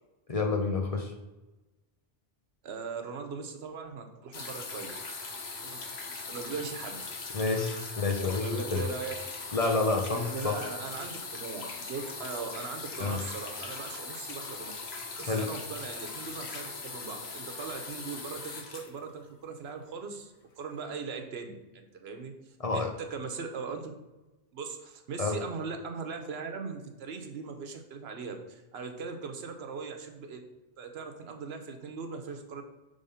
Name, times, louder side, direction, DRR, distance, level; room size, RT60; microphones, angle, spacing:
voice 1, 0.3-1.1 7.3-8.8 9.5-10.6 13.0-13.2 15.2-15.4 22.6-22.9 25.2-25.4, left 3 dB, 40° left, 3 dB, 0.6 m, -29 dB
voice 2, 2.6-4.9 5.5-7.3 8.4-9.1 10.1-14.7 15.2-23.9 24.5-30.4 30.8-32.6, right 4 dB, 80° right, 6 dB, 1.0 m, -39 dB
sound 1, 4.3-19.7 20.6-20.7, left 4 dB, 90° left, 1.2 m, -40 dB
5.1 x 3.5 x 5.5 m, 1.1 s
omnidirectional pair, 1.0 m